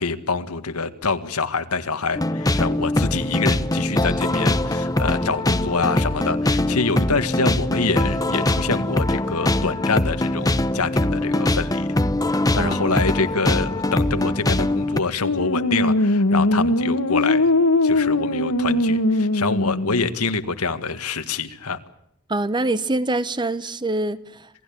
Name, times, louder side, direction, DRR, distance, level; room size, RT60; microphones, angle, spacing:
voice 1, 0.0-11.9 12.3-17.5 17.8-21.8, left 4 dB, 90° left, 1.9 m, -26 dB
sound 1, 2.1-15.0, left 1 dB, 15° left, 0.9 m, -22 dB
voice 2, 12.5-13.0 22.3-24.5, right 2 dB, 20° right, 1.0 m, -25 dB
sound 2, 15.2-20.0, left 2 dB, 70° left, 2.0 m, -20 dB
27.5 x 18.5 x 8.7 m
head